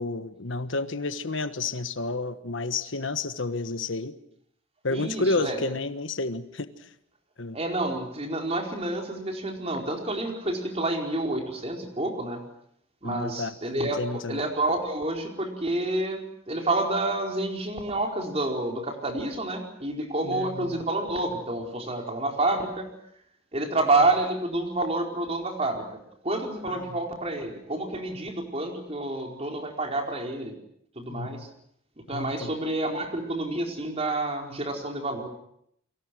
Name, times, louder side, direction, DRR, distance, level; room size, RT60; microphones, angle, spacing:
voice 1, 0.0-4.1 4.8-6.7 7.4-7.6 13.0-14.4 20.2-20.8 26.7-26.9 31.1-31.4 32.1-32.5, left 3 dB, 70° left, 1.3 m, -31 dB
voice 2, 4.9-5.7 7.5-12.4 13.0-22.9 23.5-25.8 26.2-30.5 31.0-31.5 32.1-35.3, right 2 dB, 30° right, 4.6 m, -29 dB
29.5 x 23.5 x 6.3 m
head